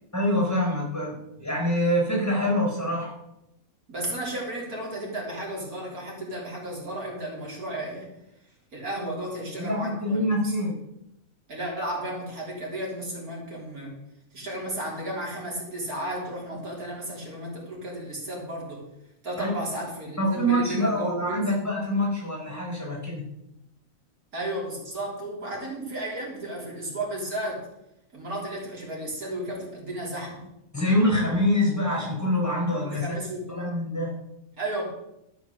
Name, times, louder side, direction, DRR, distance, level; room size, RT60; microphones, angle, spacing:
voice 1, 0.1-3.1 9.5-10.7 19.4-19.5 20.2-23.2 30.7-33.2 33.5-34.1, left 1 dB, 10° left, -1 dB, 4.2 m, -25 dB
voice 2, 3.9-8.1 8.7-10.5 11.5-13.9 14.3-18.8 19.2-21.4 24.3-27.7 28.1-30.4 32.8-33.6 34.6-34.9, right 1 dB, 90° right, -3 dB, 4.0 m, -33 dB
12.5 x 6.4 x 6.7 m, 0.84 s
omnidirectional pair, 1.5 m